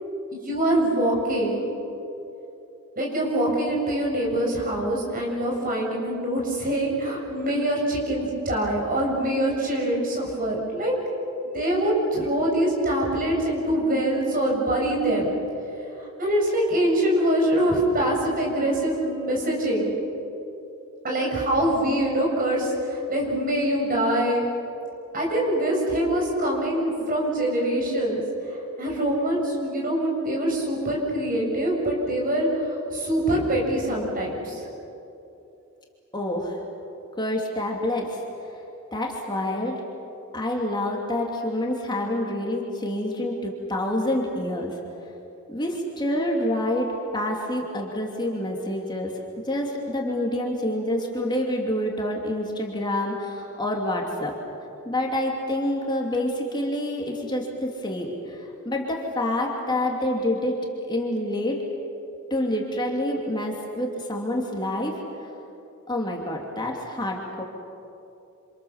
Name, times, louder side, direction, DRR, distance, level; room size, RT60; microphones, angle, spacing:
voice 1, 0.4-1.7 2.9-10.9 11.4-15.3 16.2-19.9 21.0-24.5 25.1-28.2 28.5-34.6, right 1 dB, 40° right, -2 dB, 7.0 m, -24 dB
voice 2, 36.1-36.6 37.2-38.2 38.9-39.8 40.3-44.8 45.5-46.9 47.1-49.1 49.4-54.3 54.8-60.6 60.9-61.6 62.3-65.3 65.9-67.4, left 1 dB, 20° left, -1 dB, 2.7 m, -27 dB
28.0 x 27.0 x 7.2 m, 2.9 s
head